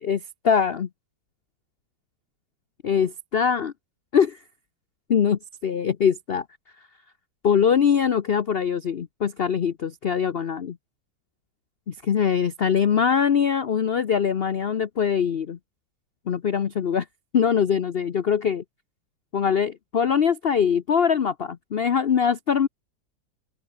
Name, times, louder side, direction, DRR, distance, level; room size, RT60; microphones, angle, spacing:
voice 1, 0.0-0.9 2.8-3.7 4.1-4.4 5.1-6.4 7.4-10.8 11.9-15.6 16.3-17.0 17.3-18.6 19.3-22.7, left 7 dB, 60° left, 0.6 m, -22 dB
open air
omnidirectional pair, 2.0 m